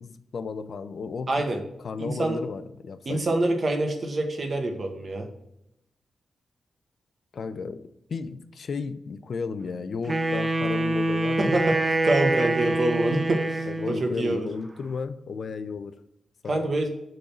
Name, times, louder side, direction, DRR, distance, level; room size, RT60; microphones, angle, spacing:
voice 1, 0.0-1.3 1.8-3.3 7.3-11.5 13.7-16.0 16.4-16.7, left 5 dB, 60° left, 12 dB, 0.5 m, -34 dB
voice 2, 1.3-1.6 2.0-2.4 3.0-5.3 11.4-14.5 16.5-16.9, right 2 dB, 45° right, 4 dB, 1.4 m, -26 dB
Wind instrument woodwind instrument, 10.0-14.0, right 2 dB, 25° right, 0.6 m, -25 dB
6.8 x 3.9 x 6.0 m, 0.81 s
cardioid pair, 100°, 0 cm